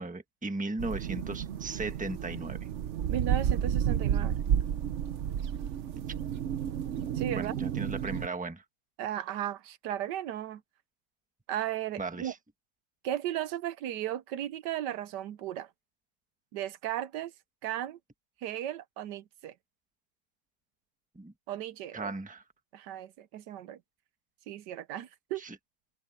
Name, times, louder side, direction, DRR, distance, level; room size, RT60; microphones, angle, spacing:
voice 1, 0.0-2.6 7.3-8.6 12.0-12.4 21.1-21.3 21.9-22.4 25.4-25.6, right 3 dB, 5° right, 1.0 m, -36 dB
sound 1, 0.8-8.3, right 9 dB, 60° right, 0.8 m, -31 dB
voice 2, 3.1-4.4 7.1-7.6 9.0-10.6 11.5-12.3 13.0-15.7 16.5-17.3 17.6-18.0 18.4-19.5 21.5-22.1 22.7-23.8 24.5-25.4, right 11 dB, 80° right, 1.3 m, -35 dB
omnidirectional pair, 1.9 m